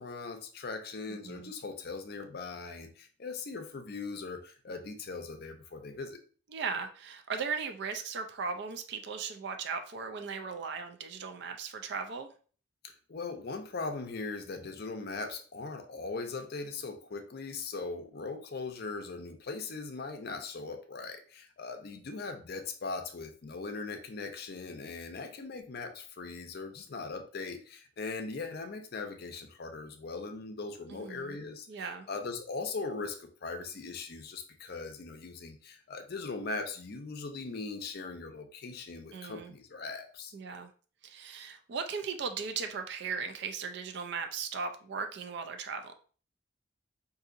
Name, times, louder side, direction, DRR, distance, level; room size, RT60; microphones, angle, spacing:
voice 1, 0.0-6.2 12.8-40.3, left 4 dB, 50° left, 5 dB, 0.5 m, -40 dB
voice 2, 1.1-1.5 6.5-12.3 30.9-31.4 31.7-32.1 39.1-39.5 40.3-40.7 41.0-45.9, right 5 dB, 55° right, 6 dB, 0.4 m, -37 dB
3.8 x 2.6 x 2.5 m, 0.41 s
head